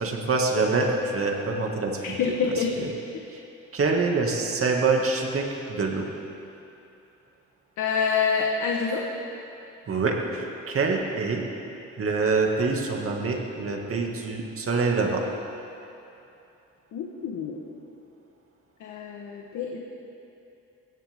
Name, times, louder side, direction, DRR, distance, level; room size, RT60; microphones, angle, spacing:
voice 1, 0.0-2.2 2.8-2.9 3.3-3.4 3.7-6.1 9.9-11.4 12.0-15.2, right 4 dB, 45° right, 1 dB, 2.4 m, -25 dB
voice 2, 2.2-2.7 7.8-9.0 16.9-17.6 18.8-19.8, left 6 dB, 80° left, -1 dB, 1.6 m, -26 dB
22.0 x 16.5 x 3.8 m, 2.8 s
cardioid pair, 90°, 30 cm